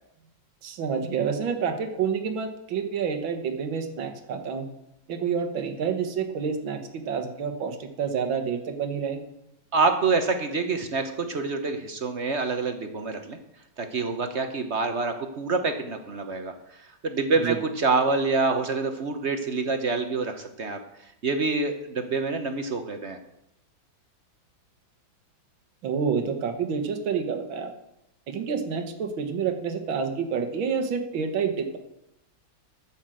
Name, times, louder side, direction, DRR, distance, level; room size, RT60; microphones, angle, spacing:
voice 1, 0.6-4.7 5.1-9.2 17.3-17.6 25.8-27.7 28.3-31.8, right 6 dB, 80° right, 5 dB, 2.0 m, -28 dB
voice 2, 9.7-13.4 13.8-16.5 16.8-20.8 21.2-23.2, right 4 dB, 50° right, 7 dB, 0.9 m, -26 dB
9.7 x 7.4 x 7.6 m, 0.84 s
omnidirectional pair, 2.1 m